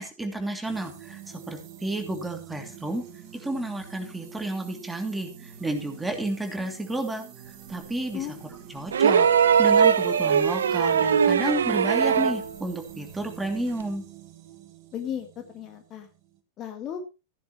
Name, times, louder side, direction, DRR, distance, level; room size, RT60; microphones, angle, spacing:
voice 1, 0.0-3.0 3.4-7.2 7.7-8.3 8.7-9.3 9.6-14.1, right 1 dB, 5° right, 3 dB, 2.9 m, -31 dB
sound 1, 0.6-16.4, right 9 dB, 40° right, 2.5 m, -46 dB
voice 2, 8.1-8.5 14.9-16.1 16.6-17.0, left 9 dB, 30° left, 5 dB, 1.9 m, -35 dB
sound 2, 8.9-12.5 13.8-13.9, right 7 dB, 65° right, 0.6 m, -20 dB
15.0 x 10.0 x 3.1 m, 0.29 s
figure-of-eight pair, 90°, 0 cm